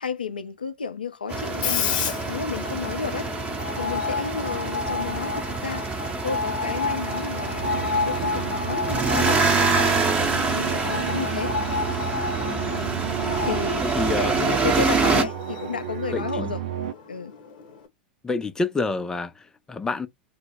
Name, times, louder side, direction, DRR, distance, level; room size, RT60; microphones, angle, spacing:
voice 1, 0.0-5.9 6.2-7.7 8.1-11.5 12.4-16.6 17.1-17.3, left 6 dB, 80° left, 0.3 m, -32 dB
Screech, 1.3-17.9, left 5 dB, 55° left, 0.8 m, -32 dB
sound 1, 1.3-15.2, right 4 dB, 25° right, 0.8 m, -26 dB
sound 2, 7.6-16.9, right 13 dB, 65° right, 0.4 m, -33 dB
voice 2, 13.8-14.3 14.8-14.9 16.1-16.5 18.2-20.1, left 3 dB, 15° left, 0.4 m, -28 dB
2.0 x 2.0 x 3.3 m
figure-of-eight pair, 85°, 5 cm